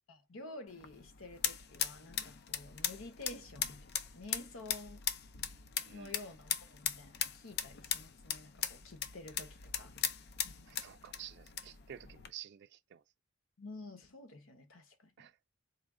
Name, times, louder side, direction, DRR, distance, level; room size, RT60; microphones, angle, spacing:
voice 1, 0.1-5.1 5.9-10.0 13.6-15.3, left 2 dB, 85° left, 1.0 m, -50 dB
sound 1, 0.7-12.3, left 8 dB, 55° left, 0.5 m, -39 dB
voice 2, 10.7-13.0 15.2-15.3, right 10 dB, 55° right, 0.3 m, -51 dB
4.2 x 2.3 x 3.6 m
head